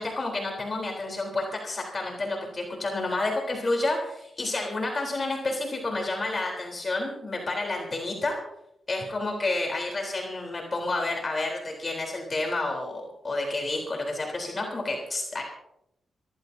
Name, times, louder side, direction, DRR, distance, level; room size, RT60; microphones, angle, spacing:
voice 1, 0.0-8.4 8.9-15.4, left 2 dB, 40° left, 1 dB, 3.9 m, -30 dB
25.5 x 14.5 x 2.8 m, 0.80 s
cardioid pair, 70°, 0 cm